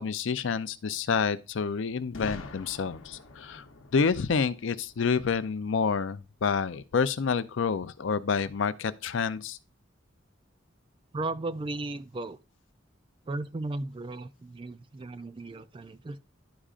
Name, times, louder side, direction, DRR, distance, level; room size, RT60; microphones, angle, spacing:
voice 1, 0.0-3.6 3.9-9.6, left 5 dB, 70° left, 0.5 m, -28 dB
Boom, 2.1-6.0, left 3 dB, 85° left, 0.9 m, -46 dB
voice 2, 11.1-12.4 13.3-16.2, right 2 dB, 25° right, 0.3 m, -35 dB
11.0 x 5.0 x 2.5 m
head